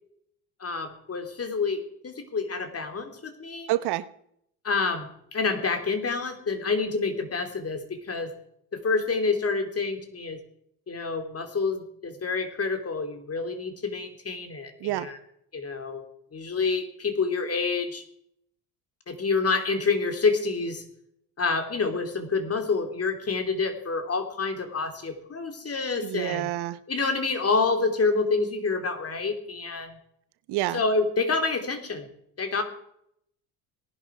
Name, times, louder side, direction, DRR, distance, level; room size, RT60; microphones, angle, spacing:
voice 1, 0.6-3.7 4.6-8.3 8.7-10.4 10.9-15.2 15.5-16.0 16.3-18.0 19.1-20.8 21.4-26.5 26.9-30.0 30.7-32.1 32.4-32.6, left 4 dB, 35° left, 7 dB, 3.2 m, -28 dB
voice 2, 3.7-4.1 14.8-15.1 26.0-26.8 30.5-30.8, right 15 dB, 65° right, 15 dB, 1.0 m, -28 dB
18.5 x 11.0 x 4.7 m, 0.71 s
hypercardioid pair, 70°, 43 cm